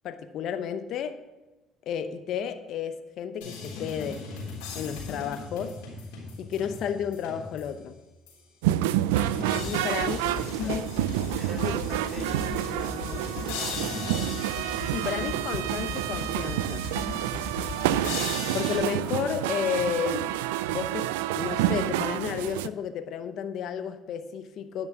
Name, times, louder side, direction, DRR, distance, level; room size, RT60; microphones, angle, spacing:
voice 1, 0.0-1.2 1.9-4.3 4.7-5.8 6.4-8.0 9.5-10.2 10.6-10.9 11.6-11.8 14.9-16.9 18.5-20.4 20.7-24.9, left 8 dB, 65° left, 0.7 m, -32 dB
sound 1, 3.4-7.8 8.3-8.4 9.2-18.8, left 4 dB, 80° left, 3.7 m, -37 dB
sound 2, 8.6-22.7, right 14 dB, 85° right, 0.3 m, -28 dB
voice 2, 10.0-10.7 11.3-14.2, equal, 5° left, 4.0 m, -43 dB
10.5 x 6.2 x 6.9 m
hypercardioid pair, 70°, 0 cm